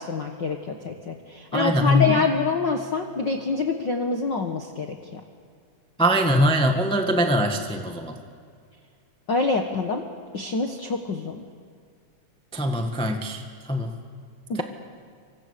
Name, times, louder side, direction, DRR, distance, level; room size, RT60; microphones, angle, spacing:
voice 1, 0.0-5.2 9.3-10.0 10.3-11.4 14.5-14.6, left 4 dB, 50° left, 4 dB, 1.5 m, -26 dB
voice 2, 1.5-2.2 6.0-8.1 12.5-13.4 13.7-13.9 14.5-14.6, equal, 5° left, 4 dB, 0.5 m, -22 dB
29.5 x 25.0 x 6.8 m, 2.2 s
omnidirectional pair, 3.7 m